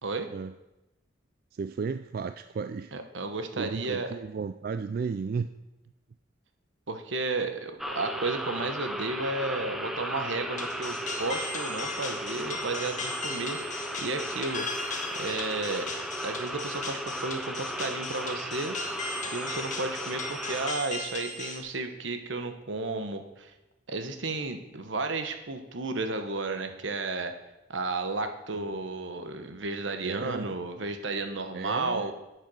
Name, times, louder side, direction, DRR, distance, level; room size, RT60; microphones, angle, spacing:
voice 1, 1.5-2.9 3.5-5.5 28.5-28.6 30.0-30.6 31.5-32.1, right 5 dB, 50° right, 11 dB, 0.3 m, -34 dB
voice 2, 2.9-4.1 6.9-14.7 15.1-15.9 16.2-18.8 19.3-23.5 23.9-27.3 27.7-32.1, right 3 dB, 80° right, 7 dB, 1.1 m, -33 dB
sound 1, 7.8-20.7, equal, ahead, 0.7 m, -36 dB
sound 2, 10.6-21.6, left 3 dB, 40° left, 1.6 m, -38 dB
8.8 x 8.1 x 6.3 m, 0.99 s
head